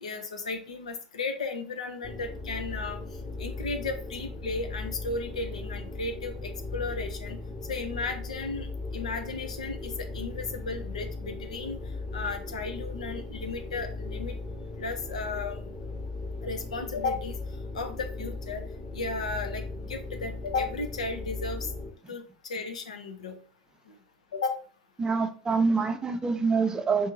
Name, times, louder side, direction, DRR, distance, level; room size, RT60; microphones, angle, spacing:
voice 1, 0.0-3.0 3.4-7.4 7.7-8.7 8.9-11.8 12.1-14.3 14.8-15.6 16.4-17.4 17.7-18.6 18.9-19.6 19.9-21.7 22.1-22.2 22.5-23.4 24.3-24.6, left 3 dB, 75° left, 7 dB, 0.6 m, -34 dB
sound 1, 2.0-21.9, left 3 dB, 15° left, 0.9 m, -38 dB
voice 2, 25.0-27.1, right 4 dB, 20° right, 8 dB, 0.6 m, -26 dB
3.8 x 2.7 x 3.9 m, 0.41 s
figure-of-eight pair, 80°, 4 cm